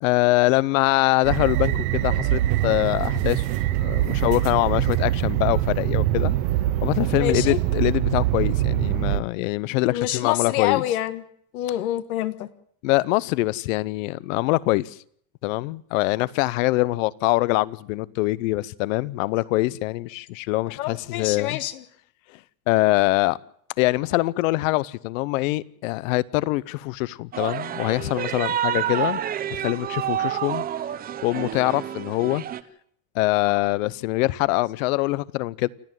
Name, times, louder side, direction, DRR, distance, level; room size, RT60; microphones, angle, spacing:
voice 1, 0.0-6.3 6.8-10.8 12.8-15.0 15.4-21.6 22.7-23.4 23.8-29.2 29.5-30.6 31.2-32.4 33.1-35.7, left 20 dB, 60° left, 0.9 m, -24 dB
sound 1, 1.2-9.2, right 14 dB, 50° right, 1.2 m, -23 dB
voice 2, 7.2-7.6 9.9-11.2 11.5-12.5 20.8-21.8, left 13 dB, 80° left, 1.6 m, -27 dB
sound 2, 27.3-32.6, right 10 dB, 20° right, 0.8 m, -29 dB
28.5 x 9.9 x 9.3 m
supercardioid pair, 145°, 43 cm